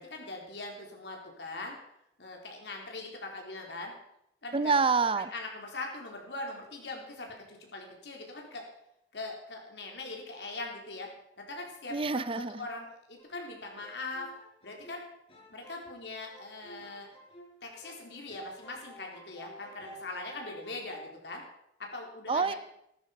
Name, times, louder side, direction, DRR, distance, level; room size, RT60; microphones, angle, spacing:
voice 1, 0.0-1.8 2.2-3.9 4.4-4.8 5.2-8.7 9.1-11.1 11.4-11.9 12.4-14.3 14.6-15.0 15.5-17.1 17.6-21.4 21.8-22.6, left 2 dB, 75° left, 1 dB, 4.0 m, -41 dB
voice 2, 4.5-5.3 11.9-12.6 22.3-22.5, right 4 dB, 30° right, 15 dB, 0.6 m, -27 dB
sound 1, 13.2-18.0 18.3-21.1, right 1 dB, 35° left, 5.1 m, -51 dB
15.5 x 12.5 x 5.3 m, 0.80 s
head